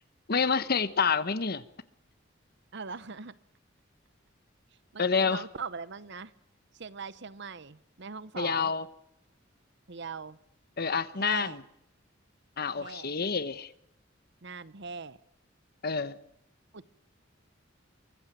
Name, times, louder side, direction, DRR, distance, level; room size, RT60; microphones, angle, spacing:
voice 1, 0.3-1.6 5.0-5.5 8.4-8.9 10.8-11.6 12.6-13.7 15.8-16.2, left 5 dB, 50° left, 14 dB, 1.1 m, -28 dB
voice 2, 2.7-3.3 4.9-6.3 6.7-8.7 9.9-10.4 11.2-11.6 12.8-13.1 14.4-15.2 16.7-16.9, right 5 dB, 60° right, 17 dB, 0.9 m, -41 dB
24.0 x 15.0 x 9.1 m, 0.80 s
head